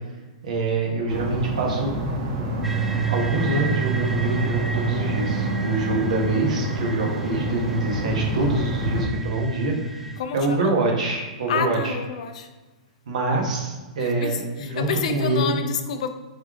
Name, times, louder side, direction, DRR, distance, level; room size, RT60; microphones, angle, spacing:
voice 1, 0.4-1.9 3.1-10.0 10.3-12.0 13.1-15.5, right 2 dB, 85° right, 0 dB, 1.3 m, -25 dB
sound 1, 1.1-9.0, equal, 55° right, 1.5 m, -28 dB
sound 2, 2.6-10.2, right 9 dB, 5° right, 0.3 m, -30 dB
voice 2, 10.2-10.6 11.5-12.5 14.0-16.1, left 6 dB, 70° left, 8 dB, 0.5 m, -29 dB
4.1 x 3.4 x 3.7 m, 1.2 s
hypercardioid pair, 130°, 4 cm